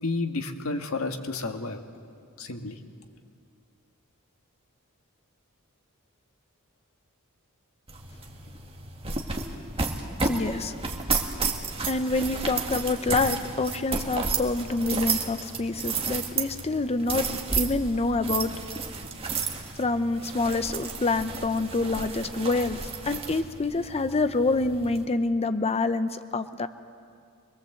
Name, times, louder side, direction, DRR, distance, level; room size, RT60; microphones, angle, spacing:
voice 1, 0.0-1.8 2.4-2.8, left 3 dB, 70° left, 5 dB, 1.6 m, -31 dB
sound 1, 7.9-25.0, right 4 dB, 25° right, 1.8 m, -32 dB
voice 2, 10.2-10.7 11.9-17.3 17.5-18.5 19.8-26.7, left 3 dB, 30° left, 10 dB, 0.7 m, -27 dB
24.5 x 21.0 x 7.9 m, 2.3 s
head